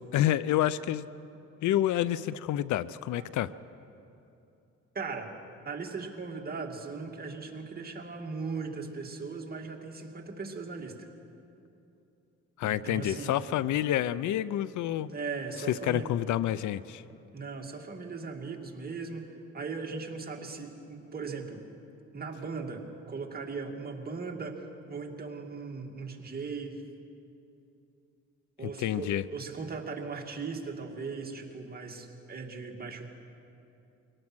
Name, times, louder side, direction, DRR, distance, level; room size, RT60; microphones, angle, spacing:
voice 1, 0.1-1.0 1.6-3.5 12.6-15.1 15.7-17.0 28.6-29.2, left 12 dB, 75° left, 18 dB, 0.6 m, -28 dB
voice 2, 4.9-5.3 5.6-11.1 12.6-13.4 15.1-16.1 17.3-21.6 22.1-26.8 28.6-33.1, right 4 dB, 30° right, 1 dB, 2.4 m, -38 dB
24.0 x 18.0 x 6.2 m, 2.8 s
cardioid pair, 90°, 30 cm